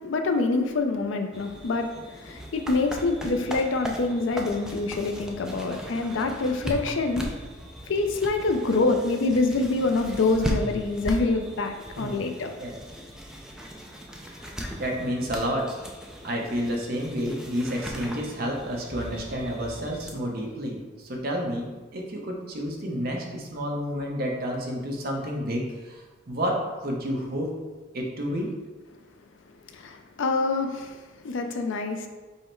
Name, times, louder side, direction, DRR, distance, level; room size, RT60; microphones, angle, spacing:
voice 1, 0.0-7.3 7.9-12.5 29.7-31.0 31.2-32.1, left 3 dB, 70° left, 6 dB, 0.4 m, -26 dB
sound 1, 1.3-20.1, equal, 5° right, 0.3 m, -38 dB
voice 2, 12.0-12.3 12.6-12.8 14.3-15.7 16.2-27.5 27.9-28.5, equal, 50° right, 0 dB, 0.7 m, -30 dB
5.5 x 2.1 x 4.4 m, 1.3 s
head